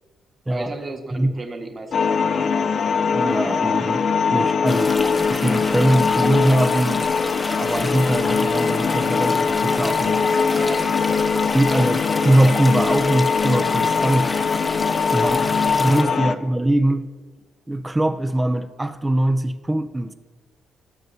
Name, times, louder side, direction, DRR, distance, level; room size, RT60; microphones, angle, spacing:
voice 1, 0.5-2.4 10.5-10.8 11.3-11.5 15.1-15.2 15.6-16.7, right 3 dB, 35° right, 1.5 m, -36 dB
sound 1, 1.9-16.4, left 5 dB, 55° left, 0.5 m, -21 dB
voice 2, 3.1-5.0 5.3-7.0 7.6-10.2 11.5-14.3 15.1-15.5 15.8-17.1 17.7-20.1, right 1 dB, 15° right, 0.5 m, -21 dB
sound 2, 4.7-16.0, left 1 dB, 10° left, 0.9 m, -31 dB
18.0 x 6.6 x 2.7 m
cardioid pair, 90°, 0 cm